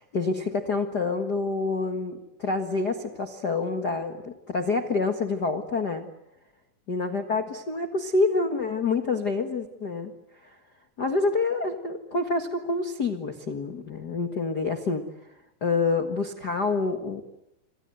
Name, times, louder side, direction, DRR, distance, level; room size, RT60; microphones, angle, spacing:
voice 1, 0.0-6.1 6.9-10.1 10.4-10.5 11.0-15.0 15.6-17.2, left 3 dB, 80° left, 6 dB, 0.8 m, -27 dB
28.0 x 26.5 x 7.9 m, 0.89 s
omnidirectional pair, 4.8 m